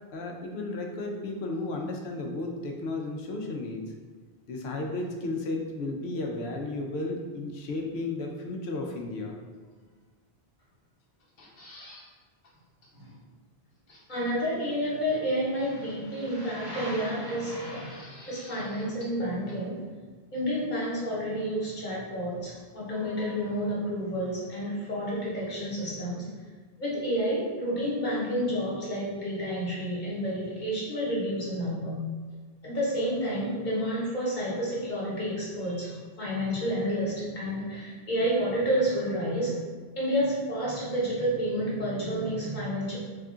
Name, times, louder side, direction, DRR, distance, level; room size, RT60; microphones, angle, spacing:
voice 1, 0.1-3.9 4.5-9.4, left 2 dB, 90° left, 1 dB, 0.9 m, -33 dB
sound 1, 11.2-12.1 12.4-12.5 12.8-12.9 13.9-14.3 15.5-16.2 17.6-19.2 19.5-19.6, left 1 dB, 65° left, 1.0 m, -51 dB
voice 2, 14.1-19.8 20.3-26.3 26.8-31.9 32.6-43.0, equal, 50° left, -7 dB, 1.2 m, -30 dB
3.5 x 2.4 x 3.7 m, 1.5 s
omnidirectional pair, 1.1 m